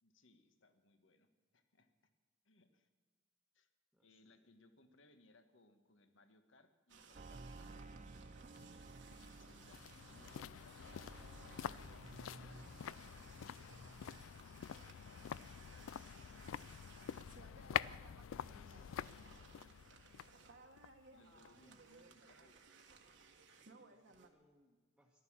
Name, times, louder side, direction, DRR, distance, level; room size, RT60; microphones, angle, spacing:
voice 1, 0.0-1.9 2.4-2.9 3.5-3.7 4.0-8.9 9.2-9.8 10.1-14.0 15.0-17.1 17.3-20.4 21.1-22.6, left 2 dB, 70° left, 9 dB, 1.3 m, -69 dB
voice 2, 3.9-4.5 21.4-22.2 23.4-25.2, equal, 5° right, 0 dB, 1.2 m, -74 dB
sound 1, 6.9-24.3, right 4 dB, 65° right, 1.6 m, -61 dB
sound 2, 7.1-14.6 14.9-15.6 15.8-15.9, right 3 dB, 40° right, 0.5 m, -56 dB
sound 3, 8.6-21.7 22.0-22.1, left 9 dB, 90° left, 0.4 m, -47 dB
14.0 x 12.0 x 7.3 m, 1.4 s
head